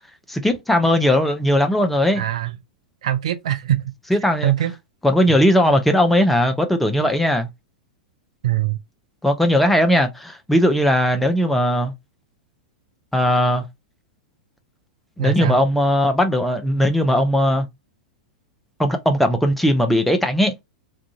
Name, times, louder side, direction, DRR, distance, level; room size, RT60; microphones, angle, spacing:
voice 1, 0.3-2.2 4.1-4.5 5.0-7.5 9.2-11.9 13.1-13.7 15.2-17.7 18.8-20.5, equal, 5° left, 0.5 m, -18 dB
voice 2, 2.1-2.6 3.0-3.9 4.4-4.7 8.4-8.8 15.2-15.6, right 12 dB, 60° right, 0.4 m, -22 dB
2.5 x 2.4 x 2.6 m
figure-of-eight pair, 95°, 4 cm